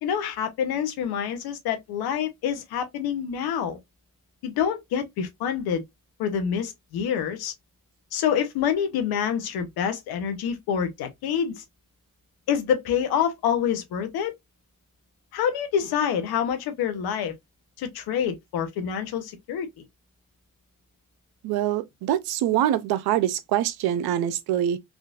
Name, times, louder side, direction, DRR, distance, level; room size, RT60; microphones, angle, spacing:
voice 1, 0.0-3.8 4.4-5.8 6.2-7.5 8.1-11.6 12.5-14.3 15.3-17.3 17.8-19.8, left 8 dB, 85° left, 0.9 m, -27 dB
voice 2, 21.4-24.8, right 11 dB, 85° right, 0.5 m, -24 dB
3.6 x 2.4 x 2.4 m
supercardioid pair, 65°, 36 cm